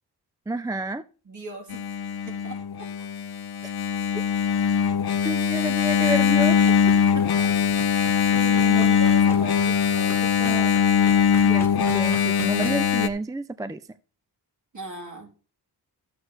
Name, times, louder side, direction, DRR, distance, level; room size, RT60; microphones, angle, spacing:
voice 1, 0.5-1.0 3.6-3.7 5.2-6.6 8.8-8.9 10.4-10.6 11.4-13.8, right 1 dB, 10° right, 13 dB, 0.3 m, -29 dB
voice 2, 1.2-1.8 2.3-2.6 6.6-6.7 7.1-7.7 8.3-10.8 14.7-15.3, right 3 dB, 45° right, 1 dB, 3.2 m, -37 dB
Engine, 1.7-13.1, left 7 dB, 65° left, 0.8 m, -21 dB
sound 1, 6.2-11.3, right 5 dB, 80° right, 1.9 m, -47 dB
sound 2, 7.2-9.5 10.1-12.8, left 1 dB, 5° left, 1.9 m, -41 dB
12.5 x 7.6 x 3.2 m, 0.37 s
cardioid pair, 80°, 41 cm